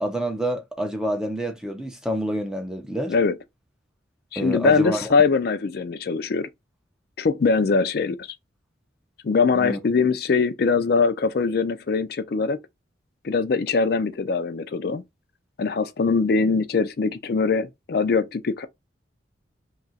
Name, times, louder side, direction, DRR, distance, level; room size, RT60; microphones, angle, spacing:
voice 1, 0.0-3.1 4.4-5.1 9.6-9.8, equal, 5° right, 0.5 m, -27 dB
voice 2, 4.3-6.5 7.2-8.4 9.2-12.6 13.2-15.0 15.6-18.7, left 4 dB, 55° left, 0.4 m, -22 dB
2.9 x 2.4 x 4.0 m
head